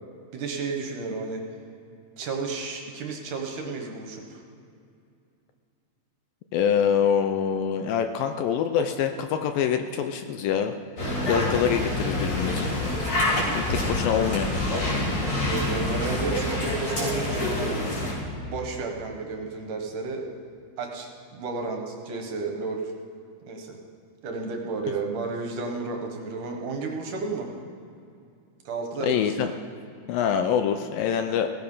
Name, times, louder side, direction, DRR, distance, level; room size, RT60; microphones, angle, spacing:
voice 1, 0.3-1.4 2.2-4.4 15.3-17.8 18.4-20.3 20.8-22.9 23.5-23.8 24.2-27.5 28.6-29.3, right 4 dB, 65° right, 2 dB, 2.6 m, -32 dB
voice 2, 6.5-10.8 11.3-12.7 13.5-14.5 29.0-29.5 30.1-31.5, left 8 dB, 75° left, 7 dB, 2.2 m, -25 dB
sound 1, 11.0-18.1, left 1 dB, 50° left, 5.2 m, -27 dB
17.0 x 15.0 x 5.6 m, 2.4 s
omnidirectional pair, 4.4 m